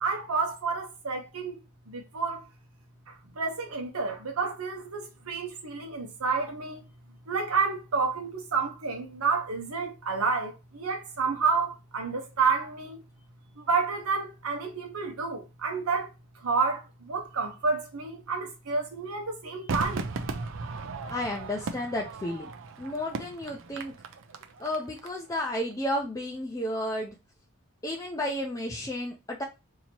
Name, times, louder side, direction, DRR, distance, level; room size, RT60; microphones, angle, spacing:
voice 1, 0.0-1.5 1.9-2.4 3.4-6.8 7.3-13.0 13.7-16.1 16.4-20.0, right 4 dB, 75° right, 0.8 m, -29 dB
Crowd / Fireworks, 19.7-25.1 25.3-25.4, right 3 dB, 60° right, 0.5 m, -36 dB
voice 2, 21.1-22.5 22.8-23.9 24.6-27.1 27.8-29.4, left 1 dB, 15° left, 0.5 m, -32 dB
2.8 x 2.8 x 4.3 m
head